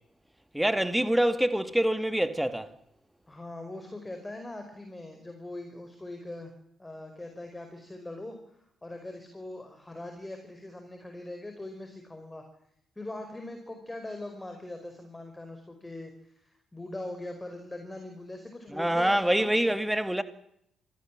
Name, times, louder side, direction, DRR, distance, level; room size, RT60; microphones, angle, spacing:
voice 1, 0.5-2.7 18.7-20.2, right 1 dB, 5° right, 2.2 m, -25 dB
voice 2, 3.3-6.5 6.8-12.4 13.0-19.7, left 2 dB, 15° left, 5.2 m, -41 dB
27.5 x 18.0 x 7.6 m
figure-of-eight pair, 40°, 0 cm